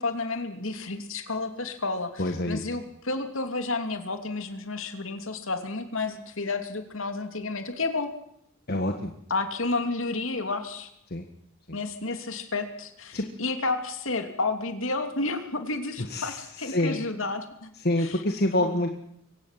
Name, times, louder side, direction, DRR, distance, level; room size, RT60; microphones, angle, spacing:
voice 1, 0.0-8.1 9.3-10.9 11.7-17.7 18.0-18.2 18.6-18.8, left 3 dB, 65° left, 7 dB, 2.9 m, -31 dB
voice 2, 2.2-2.6 8.7-9.1 11.1-11.2 11.7-11.8 13.1-13.2 16.1-16.4 16.6-17.0 17.8-18.9, left 1 dB, 50° left, 4 dB, 1.6 m, -26 dB
23.5 x 17.5 x 7.6 m, 0.73 s
head